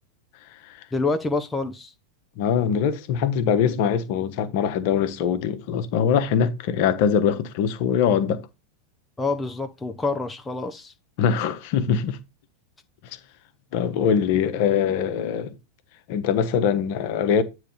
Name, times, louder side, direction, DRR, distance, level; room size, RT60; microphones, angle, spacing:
voice 1, 0.9-1.9 9.2-10.9, left 3 dB, 10° left, 0.6 m, -27 dB
voice 2, 2.4-8.4 11.2-12.2 13.7-15.6 16.1-17.4, left 7 dB, 45° left, 0.8 m, -22 dB
8.8 x 3.2 x 5.2 m
figure-of-eight pair, 90°, 0 cm